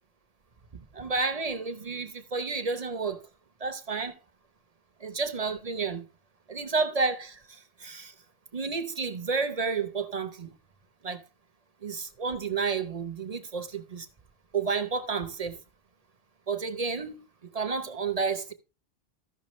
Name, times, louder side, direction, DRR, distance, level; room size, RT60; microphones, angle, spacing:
voice 1, 0.9-3.2 3.6-4.2 5.0-6.1 6.5-8.1 8.5-10.5 11.0-11.2 11.8-14.1 14.5-15.6 16.5-18.5, right 4 dB, 40° right, 0.8 m, -31 dB
14.0 x 5.9 x 3.1 m
omnidirectional pair, 1.1 m